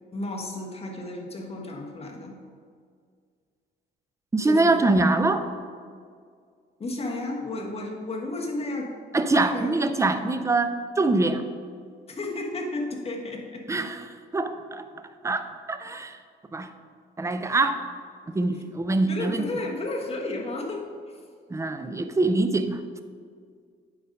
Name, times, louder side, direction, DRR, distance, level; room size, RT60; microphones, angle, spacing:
voice 1, 0.1-2.4 4.4-4.9 6.8-9.0 9.3-9.8 12.1-13.7 19.1-21.2, left 2 dB, 30° left, 0 dB, 1.3 m, -33 dB
voice 2, 4.3-5.5 9.1-11.4 13.7-14.9 15.2-16.2 16.5-16.7 17.2-17.8 18.3-19.5 21.5-22.8, right 2 dB, 15° right, 9 dB, 0.5 m, -24 dB
9.1 x 4.0 x 5.2 m, 2.1 s
cardioid pair, 90°, 20 cm